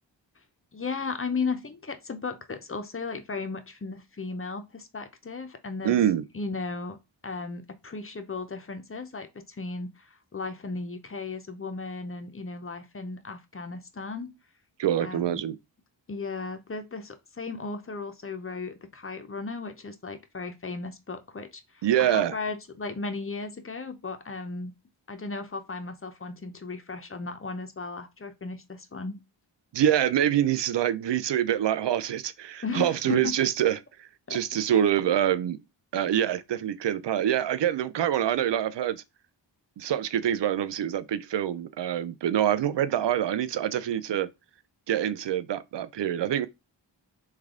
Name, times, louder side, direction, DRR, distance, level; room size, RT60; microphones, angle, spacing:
voice 1, 0.7-6.0 6.3-7.0 7.2-14.3 15.0-15.5 16.1-24.7 25.1-29.2 32.6-33.3 34.3-34.6, left 4 dB, 30° left, 0.6 m, -35 dB
voice 2, 5.8-6.2 14.8-15.6 21.8-22.4 29.7-35.6 35.9-39.0 39.8-44.3 44.9-46.5, right 10 dB, 65° right, 0.5 m, -25 dB
3.3 x 2.3 x 3.6 m
cardioid pair, 40°, 47 cm